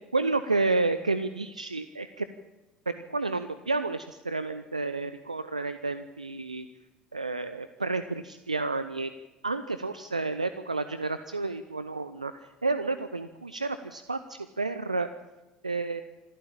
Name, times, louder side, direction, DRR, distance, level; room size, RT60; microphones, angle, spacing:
voice 1, 0.1-2.3 2.9-6.6 7.1-9.1 9.4-12.3 12.6-15.1 15.6-16.0, right 3 dB, 90° right, 12 dB, 0.6 m, -30 dB
26.0 x 13.5 x 8.7 m, 1.1 s
figure-of-eight pair, 65°, 4 cm